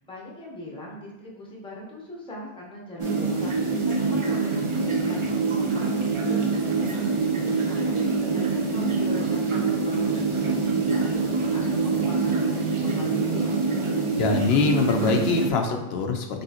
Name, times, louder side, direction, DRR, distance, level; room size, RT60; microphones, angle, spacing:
voice 1, 0.0-5.3 5.5-13.6, left 2 dB, 5° left, -3 dB, 0.8 m, -41 dB
sound 1, 3.0-15.5, right 4 dB, 40° right, 0.5 m, -25 dB
voice 2, 14.2-16.4, left 4 dB, 80° left, 4 dB, 0.8 m, -24 dB
5.3 x 3.1 x 2.8 m, 0.96 s
omnidirectional pair, 1.0 m